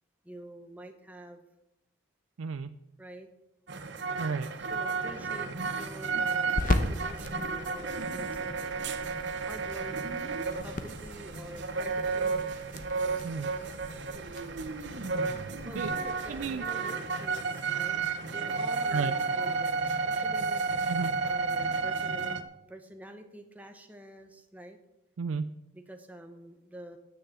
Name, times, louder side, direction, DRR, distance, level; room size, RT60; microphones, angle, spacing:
voice 1, 0.2-1.4 3.0-3.3 4.6-8.8 9.5-10.0 10.6-12.4 15.6-20.6 21.2-24.8 25.7-27.0, right 1 dB, 10° right, 5 dB, 1.1 m, -47 dB
voice 2, 2.4-2.7 4.2-4.5 13.2-13.6 15.8-15.9 16.3-16.6 18.9-19.1 20.9-21.1 25.2-25.6, right 5 dB, 85° right, 10 dB, 0.5 m, -32 dB
sound 1, 3.7-22.4, right 4 dB, 55° right, 0.8 m, -32 dB
sound 2, 4.5-16.7, left 1 dB, 40° left, 0.9 m, -38 dB
9.4 x 6.8 x 8.7 m, 0.92 s
head